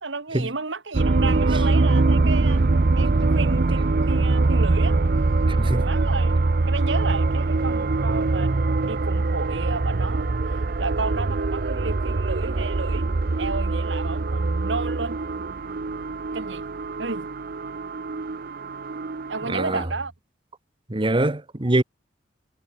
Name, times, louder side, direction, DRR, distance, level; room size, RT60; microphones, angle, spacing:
voice 1, 0.0-5.0 5.7-15.2 16.3-16.6 17.0-17.3 19.3-20.1, right 3 dB, 70° right, 1.8 m, -32 dB
sound 1, 0.9-19.8, right 3 dB, 50° right, 0.7 m, -23 dB
voice 2, 5.5-5.9 19.5-19.9 20.9-21.8, right 1 dB, 25° right, 1.1 m, -23 dB
head